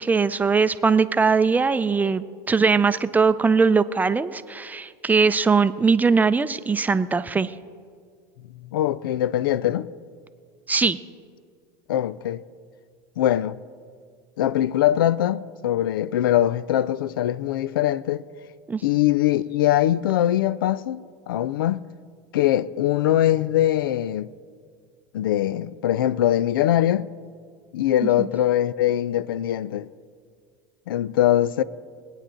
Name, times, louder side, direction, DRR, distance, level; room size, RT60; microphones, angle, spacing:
voice 1, 0.0-7.5 10.7-11.0 18.7-18.8 28.2-28.3, right 4 dB, 15° right, 0.5 m, -20 dB
voice 2, 8.7-9.9 11.9-12.4 13.2-13.6 14.4-18.2 18.8-21.9 22.3-24.3 25.1-27.1 27.7-29.9 30.9-31.6, left 12 dB, 90° left, 0.4 m, -22 dB
22.0 x 9.0 x 3.8 m
supercardioid pair, 95°, 11 cm